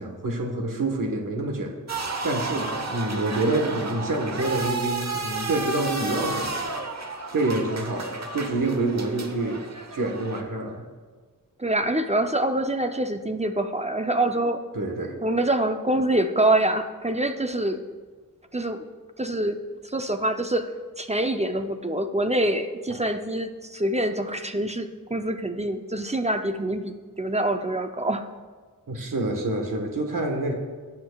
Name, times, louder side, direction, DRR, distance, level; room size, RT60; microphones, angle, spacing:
voice 1, 0.0-1.7 2.2-6.6 7.3-9.6 9.9-10.8 14.7-15.1 28.9-30.5, right 2 dB, 70° right, 2 dB, 1.3 m, -27 dB
sound 1, 1.9-10.4, right 3 dB, 50° right, 1.0 m, -32 dB
voice 2, 11.6-14.6 15.2-17.8 18.5-18.8 19.2-20.7 21.0-28.2, right 1 dB, 20° right, 7 dB, 0.5 m, -25 dB
18.0 x 7.4 x 2.3 m, 1.5 s
wide cardioid pair, 95°, 34 cm